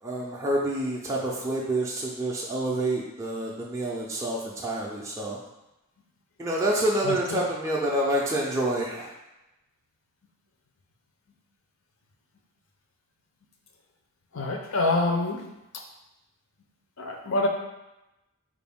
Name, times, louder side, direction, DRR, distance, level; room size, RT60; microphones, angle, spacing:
voice 1, 0.0-5.4 6.4-9.1, right 1 dB, 15° right, -4 dB, 0.4 m, -28 dB
voice 2, 7.0-7.4 14.3-15.4 17.0-17.5, left 2 dB, 65° left, 2 dB, 0.6 m, -26 dB
4.5 x 2.5 x 3.5 m, 0.97 s
head